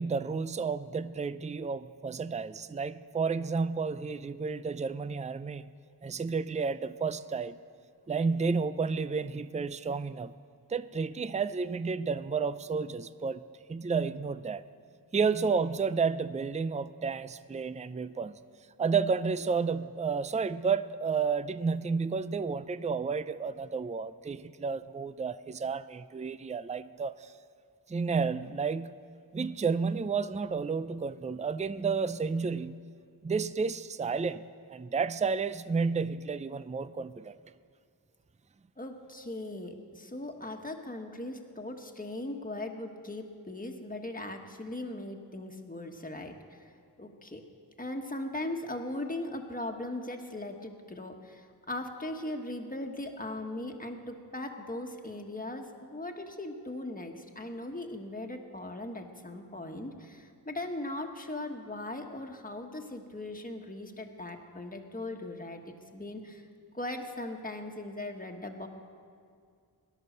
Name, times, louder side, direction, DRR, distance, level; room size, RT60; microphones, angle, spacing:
voice 1, 0.0-5.7 6.0-7.6 8.1-10.3 10.7-13.4 13.7-14.6 15.1-18.3 18.8-27.1 27.9-29.0 29.3-32.8 33.2-34.4 34.7-37.3, right 5 dB, 20° right, 14 dB, 0.4 m, -31 dB
voice 2, 38.8-47.4 47.8-66.5 66.7-68.7, left 1 dB, 20° left, 3 dB, 1.4 m, -39 dB
18.0 x 11.0 x 6.7 m, 2.2 s
wide cardioid pair, 45°, 40 cm